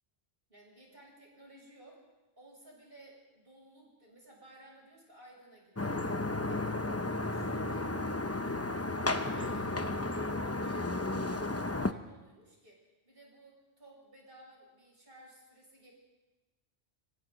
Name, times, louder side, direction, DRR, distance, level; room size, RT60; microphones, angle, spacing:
voice 1, 0.5-2.0 2.4-6.1 6.4-8.8 9.2-15.9, right 1 dB, 60° right, -2 dB, 7.5 m, -57 dB
sound 1, 5.8-11.9, left 2 dB, 15° left, 0.7 m, -33 dB
27.0 x 25.0 x 4.0 m, 1.1 s
omnidirectional pair, 1.1 m